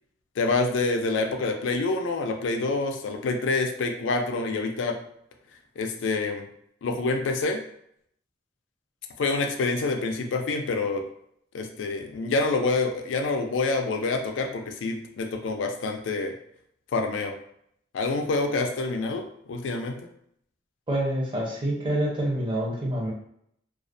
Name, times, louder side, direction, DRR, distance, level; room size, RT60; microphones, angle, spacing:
voice 1, 0.4-5.0 5.8-6.4 6.8-7.6 9.2-11.0 11.5-16.3 16.9-17.3 17.9-20.0, left 3 dB, 80° left, 5 dB, 0.4 m, -27 dB
voice 2, 20.9-23.1, right 1 dB, 25° right, -4 dB, 0.6 m, -27 dB
2.3 x 2.1 x 2.5 m, 0.69 s
head